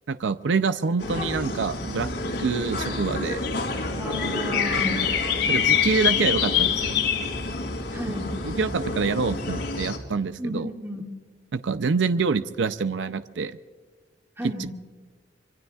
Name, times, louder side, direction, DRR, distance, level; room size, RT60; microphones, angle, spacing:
voice 1, 0.1-2.1 2.4-3.4 5.5-6.9 8.4-10.7 11.5-13.6, right 4 dB, 85° right, 12 dB, 0.5 m, -26 dB
sound 1, 1.0-10.0, left 6 dB, 80° left, 3.1 m, -26 dB
voice 2, 4.0-5.1 7.9-8.4 10.4-11.1 14.4-14.7, equal, 15° right, 1 dB, 2.1 m, -33 dB
25.5 x 23.5 x 2.4 m, 1.5 s
head